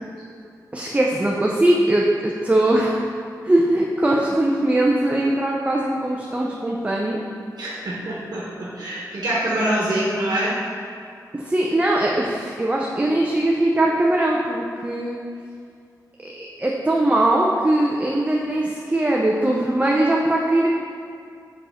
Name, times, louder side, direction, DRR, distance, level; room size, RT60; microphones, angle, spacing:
voice 1, 0.7-3.0 3.4-7.2 11.3-15.2 16.4-20.7, right 1 dB, 20° right, -2 dB, 0.6 m, -20 dB
voice 2, 7.6-10.5, right 1 dB, 75° right, -6 dB, 1.1 m, -25 dB
5.1 x 4.2 x 5.7 m, 2.4 s
wide cardioid pair, 85°, 7 cm